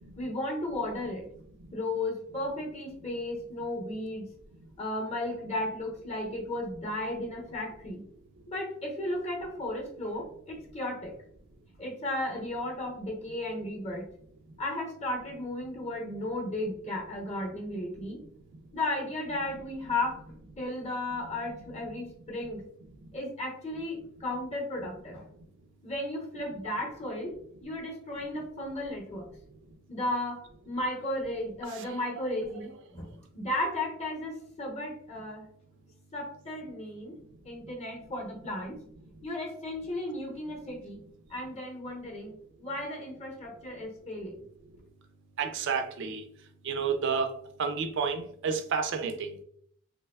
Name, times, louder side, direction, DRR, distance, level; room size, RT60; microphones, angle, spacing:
voice 1, 0.2-1.3 1.7-4.3 4.8-8.0 8.5-11.2 11.8-14.1 14.6-18.2 18.7-20.2 20.6-22.6 23.1-25.2 25.8-29.3 29.9-35.5 36.1-37.1 37.4-38.8 39.2-41.0 41.3-42.3 42.6-44.4, left 1 dB, 30° left, 0.8 m, -34 dB
voice 2, 45.4-46.2 46.6-49.4, right 5 dB, 60° right, 0.4 m, -30 dB
3.3 x 2.9 x 2.2 m
head